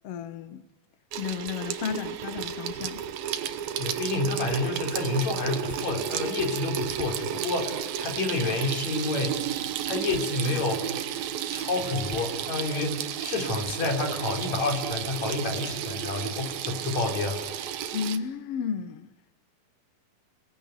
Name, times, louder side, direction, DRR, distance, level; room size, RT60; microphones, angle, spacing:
voice 1, 0.0-0.6 1.2-3.0 17.9-19.1, left 7 dB, 75° left, 1.4 m, -33 dB
Water tap faucet / Sink (filling or washing), 1.1-18.2, right 9 dB, 75° right, 2.8 m, -32 dB
voice 2, 3.8-9.4 9.8-10.9 11.5-17.4, left 3 dB, 45° left, 5.0 m, -29 dB
28.5 x 18.5 x 9.5 m
omnidirectional pair, 4.4 m